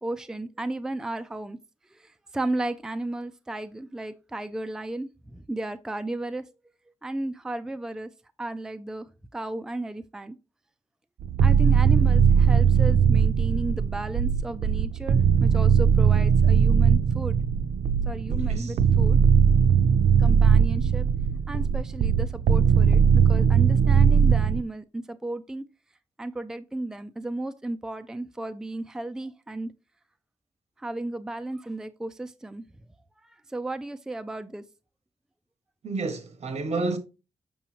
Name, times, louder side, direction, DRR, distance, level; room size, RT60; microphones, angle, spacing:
voice 1, 0.0-1.6 1.9-6.4 7.0-8.1 8.4-9.1 9.3-10.4 11.4-17.4 18.1-19.2 20.2-21.1 21.5-23.0 23.3-25.6 26.2-29.7 30.8-32.7 33.2-34.6, right 2 dB, 5° right, 0.4 m, -34 dB
sound 1, 11.2-24.6, right 7 dB, 90° right, 0.4 m, -20 dB
voice 2, 18.3-18.8 35.8-37.0, right 3 dB, 65° right, 1.4 m, -30 dB
7.0 x 6.0 x 2.9 m
wide cardioid pair, 130°, 12 cm